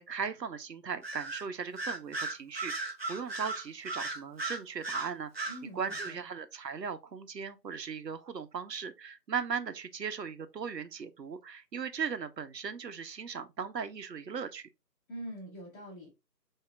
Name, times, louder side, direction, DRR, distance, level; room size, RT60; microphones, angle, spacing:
voice 1, 0.0-14.7, right 6 dB, 80° right, 0.9 m, -38 dB
Bird vocalization bird call bird song, 1.0-1.4 1.8-5.6 5.9-6.1, right 3 dB, 40° right, 0.7 m, -36 dB
voice 2, 5.5-6.2 15.1-16.1, right 1 dB, 10° left, 2.0 m, -44 dB
5.8 x 2.8 x 2.3 m
figure-of-eight pair, 160°, 49 cm